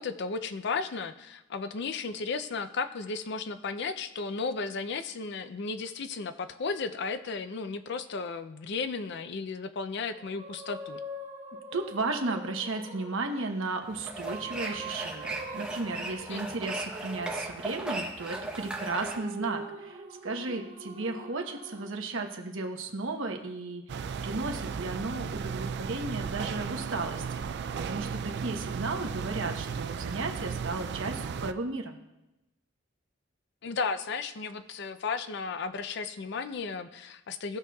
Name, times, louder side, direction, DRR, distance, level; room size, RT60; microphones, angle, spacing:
voice 1, 0.0-11.0 16.3-16.5 33.6-37.6, left 4 dB, 60° left, 11 dB, 0.5 m, -34 dB
sound 1, 10.1-21.9, right 2 dB, 40° right, 1.2 m, -44 dB
voice 2, 11.7-32.0, right 3 dB, 75° right, 4 dB, 1.0 m, -34 dB
sound 2, 13.8-19.2, right 2 dB, 5° right, 0.9 m, -37 dB
sound 3, 23.9-31.5, right 6 dB, 55° right, 0.3 m, -35 dB
16.0 x 6.1 x 2.3 m, 0.94 s
head